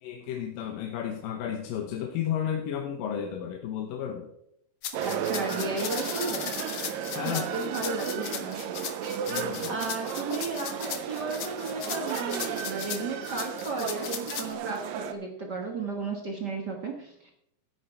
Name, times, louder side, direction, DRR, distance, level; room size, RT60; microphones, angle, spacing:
voice 1, 0.0-4.3 7.2-7.9 9.3-9.8, left 9 dB, 85° left, 4 dB, 2.7 m, -33 dB
sound 1, 4.8-14.5, left 9 dB, 65° left, 1.5 m, -37 dB
sound 2, 4.9-15.1, right 8 dB, 85° right, 2.5 m, -34 dB
voice 2, 5.0-6.5 7.2-8.6 9.7-17.3, right 3 dB, 45° right, 1 dB, 1.4 m, -34 dB
13.5 x 9.2 x 4.6 m, 0.74 s
omnidirectional pair, 3.9 m